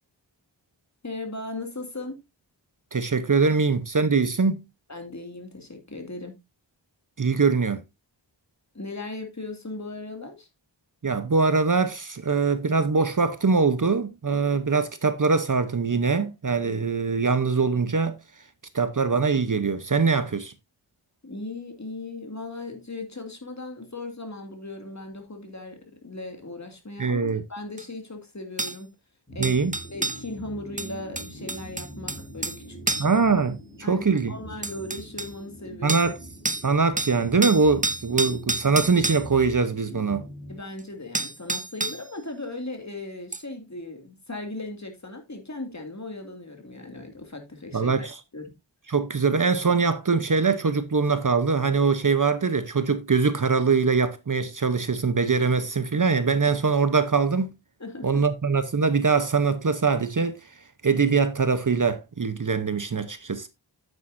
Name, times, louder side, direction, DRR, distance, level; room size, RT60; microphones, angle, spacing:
voice 1, 1.0-2.2 4.9-6.3 8.7-10.5 21.2-28.9 29.3-29.6 29.9-33.1 33.8-36.0 40.5-48.1 48.3-48.5 57.8-58.2, left 2 dB, 35° left, 2.4 m, -37 dB
voice 2, 2.9-4.6 7.2-7.8 11.0-18.2 18.7-20.5 27.0-27.4 29.4-29.7 33.0-33.6 33.9-34.3 35.8-36.2 36.5-40.2 47.7-48.1 48.9-57.5 58.0-60.4 60.8-63.5, right 4 dB, 45° right, 0.9 m, -23 dB
sound 1, 27.8-27.9 28.6-28.8 29.4-30.2 30.8-32.6 32.9-33.2 34.2-34.3 34.6-35.3 35.9-36.2 36.5-36.7 37.0-39.3 40.8-40.9 41.1-42.1 43.3-43.4, right 2 dB, 15° right, 0.7 m, -29 dB
sound 2, 29.3-41.2, right 1 dB, 20° left, 4.7 m, -43 dB
9.2 x 8.7 x 2.6 m
wide cardioid pair, 65°, 45 cm